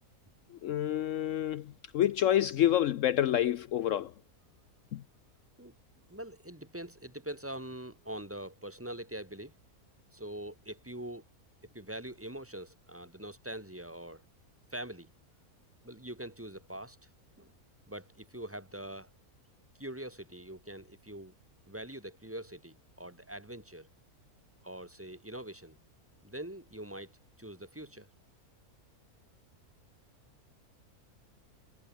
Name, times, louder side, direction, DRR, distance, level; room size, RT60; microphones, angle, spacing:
voice 1, 0.5-4.1 4.9-5.0, left 11 dB, 65° left, 0.9 m, -28 dB
voice 2, 6.1-9.5 10.1-11.2 11.7-14.2 14.7-15.1 15.8-17.0 17.4-17.5 17.9-19.1 19.8-21.3 21.7-23.9 24.6-25.8 26.2-28.1, right 1 dB, 10° right, 2.9 m, -43 dB
omnidirectional pair, 1.6 m